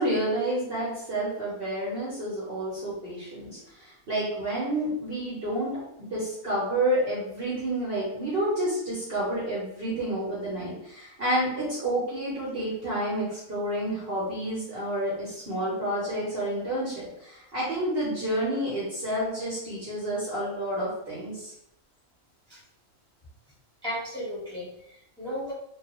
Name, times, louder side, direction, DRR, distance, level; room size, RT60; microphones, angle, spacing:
voice 1, 0.0-5.7 6.0-21.5, right 1 dB, 50° right, -7 dB, 0.9 m, -29 dB
voice 2, 23.8-25.5, equal, 5° left, -8 dB, 0.9 m, -35 dB
2.3 x 2.1 x 2.9 m, 0.78 s
omnidirectional pair, 1.4 m